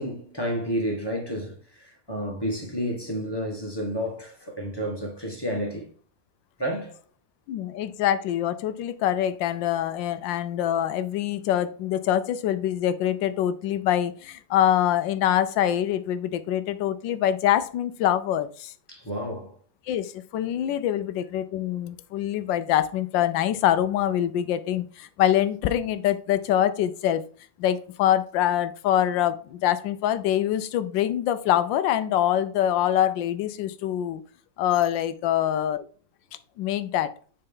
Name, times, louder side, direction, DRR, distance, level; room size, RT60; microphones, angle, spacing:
voice 1, 0.0-5.9 6.6-7.0 18.9-19.5, equal, 15° left, 1.3 m, -30 dB
voice 2, 7.5-18.7 19.9-27.2 27.6-34.2 34.6-35.8 36.6-37.1, left 11 dB, 80° left, 1.3 m, -24 dB
6.7 x 4.4 x 3.7 m
omnidirectional pair, 2.0 m